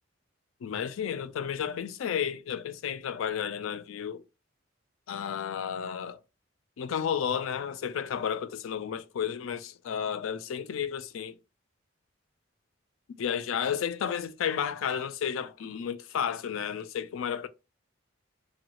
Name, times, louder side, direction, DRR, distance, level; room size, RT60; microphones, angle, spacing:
voice 1, 0.6-4.2 5.1-6.2 6.8-11.3 13.2-17.5, left 8 dB, 85° left, 0.3 m, -32 dB
2.9 x 2.3 x 2.8 m
head